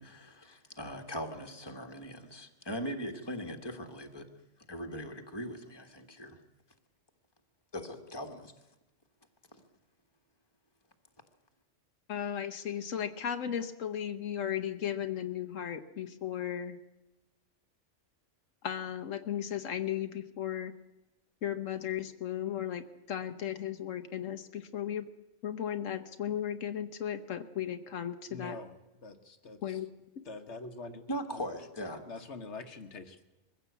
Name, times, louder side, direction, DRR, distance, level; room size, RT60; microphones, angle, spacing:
voice 1, 0.0-4.3 4.7-6.4 7.7-8.5 9.5-9.6 31.1-32.0, equal, 20° left, 5 dB, 1.7 m, -40 dB
voice 2, 12.1-16.8 18.6-20.7 21.4-25.1 25.4-28.6 29.6-29.9 30.2-30.3, left 10 dB, 80° left, 8 dB, 1.3 m, -35 dB
voice 3, 28.3-29.8 30.2-31.0 31.3-31.4 32.1-33.2, left 3 dB, 65° left, 7 dB, 1.4 m, -45 dB
22.0 x 15.5 x 8.2 m, 0.98 s
omnidirectional pair, 1.3 m